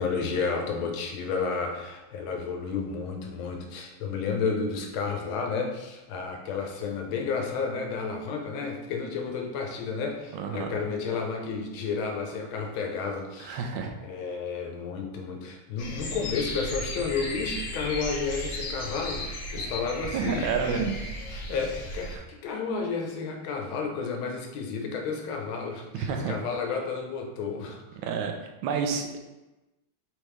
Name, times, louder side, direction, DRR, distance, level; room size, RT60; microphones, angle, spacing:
voice 1, 0.0-13.6 14.0-20.8 21.3-27.8, left 5 dB, 90° left, 3 dB, 1.5 m, -32 dB
voice 2, 10.3-10.8 13.4-13.9 20.1-21.0 22.1-22.2 25.9-26.3 28.0-29.2, right 6 dB, 80° right, 4 dB, 1.4 m, -29 dB
sound 1, 15.8-22.2, left 1 dB, 70° left, 1.2 m, -35 dB
4.1 x 3.5 x 3.2 m, 1.1 s
omnidirectional pair, 2.2 m